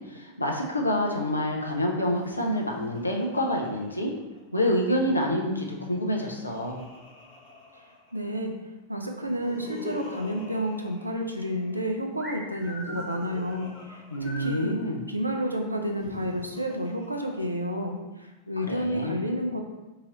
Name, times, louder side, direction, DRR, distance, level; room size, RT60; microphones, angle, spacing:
voice 1, 0.1-4.1 4.5-6.9 14.1-15.0 18.7-19.2, equal, 80° left, 0 dB, 0.5 m, -27 dB
Laughter, 2.1-4.8 5.9-8.5 9.2-11.9 12.5-14.9 15.8-17.9, left 2 dB, 45° left, 1.2 m, -47 dB
voice 2, 8.1-14.8 15.1-19.6, equal, 85° right, 2 dB, 0.4 m, -30 dB
sound 1, 12.2-14.7, equal, 5° left, 0.9 m, -41 dB
2.9 x 2.9 x 3.8 m, 1.1 s
figure-of-eight pair, 90°, 0 cm